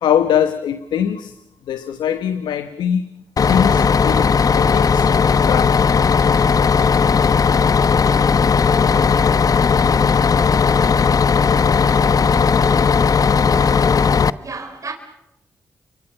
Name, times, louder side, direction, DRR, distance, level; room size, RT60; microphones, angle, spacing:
voice 1, 0.0-1.4 1.7-3.0 3.4-5.1 5.4-5.9, left 9 dB, 80° left, 1.1 m, -21 dB
Bus, 3.4-14.3, left 5 dB, 50° left, 0.9 m, -16 dB
voice 2, 12.7-13.3 14.4-14.9, right 4 dB, 45° right, 3.7 m, -34 dB
29.0 x 24.0 x 5.8 m
supercardioid pair, 45°, 8 cm